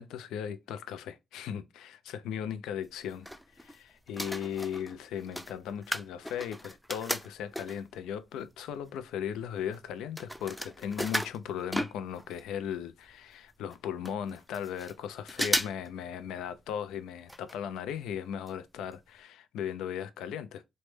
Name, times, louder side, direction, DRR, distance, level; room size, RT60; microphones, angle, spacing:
voice 1, 0.0-3.3 3.6-20.7, left 8 dB, 85° left, 0.4 m, -37 dB
sound 1, 2.8-3.8 4.1-8.0 8.6-8.7 8.8-12.5 12.7-12.8 13.0-13.1 13.7-13.8 14.0-14.9 15.3-15.9 16.2-16.3 17.3-17.6 17.9-18.0 18.5-18.6 18.9-19.0, equal, ahead, 0.3 m, -35 dB
3.1 x 2.0 x 3.1 m
cardioid pair, 90°, 0 cm